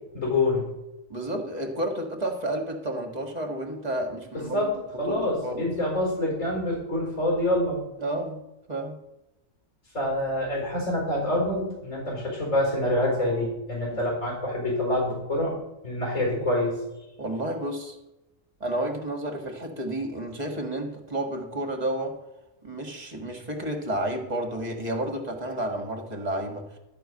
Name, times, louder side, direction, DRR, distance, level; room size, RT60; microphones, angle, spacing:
voice 1, 0.1-0.7 4.3-4.7 5.0-7.8 9.9-15.5 15.8-16.7, left 1 dB, 80° left, -2 dB, 4.7 m, -26 dB
voice 2, 1.1-4.7 5.1-5.7 8.0-8.4 8.7-9.0 13.9-14.1 17.2-17.9 18.6-22.2 22.6-26.6, right 1 dB, 30° right, 3 dB, 1.7 m, -31 dB
12.5 x 4.6 x 7.8 m, 0.93 s
omnidirectional pair, 1.3 m